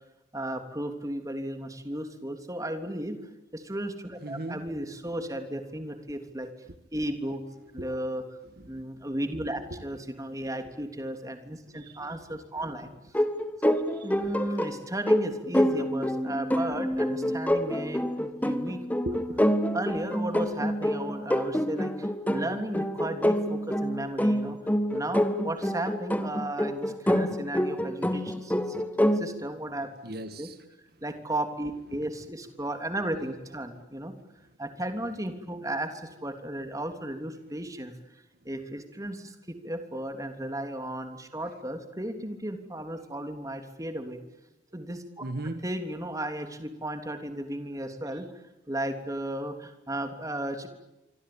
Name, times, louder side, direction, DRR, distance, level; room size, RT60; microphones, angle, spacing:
voice 1, 0.3-3.2 3.5-6.5 6.9-7.4 7.7-8.2 8.7-12.9 13.6-13.8 14.0-18.8 19.7-24.6 24.9-29.9 30.4-30.5 31.0-34.1 34.6-37.9 38.4-44.2 44.7-45.2 45.6-48.3 48.7-50.7, right 1 dB, 20° right, 7 dB, 3.3 m, -34 dB
voice 2, 4.2-4.7 7.8-7.9 8.6-8.8 9.6-9.8 11.7-12.8 13.9-14.3 16.9-17.0 19.0-19.4 30.0-30.7 32.1-32.2 33.6-33.9 45.2-45.7 48.1-48.2, right 1 dB, 55° right, 10 dB, 1.8 m, -39 dB
sound 1, 13.1-29.2, equal, 10° left, 1.6 m, -27 dB
26.0 x 25.5 x 8.8 m, 0.95 s
head